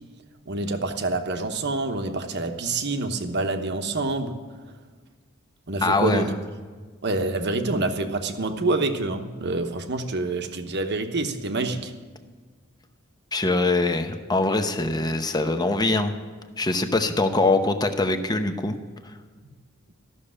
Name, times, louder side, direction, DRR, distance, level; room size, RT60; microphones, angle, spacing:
voice 1, 0.5-4.4 5.7-6.3 7.0-11.9, right 2 dB, 55° right, 7 dB, 1.0 m, -27 dB
voice 2, 5.8-6.3 13.3-16.1 16.6-18.8, left 2 dB, 20° left, 7 dB, 0.8 m, -23 dB
13.5 x 6.7 x 9.8 m, 1.5 s
head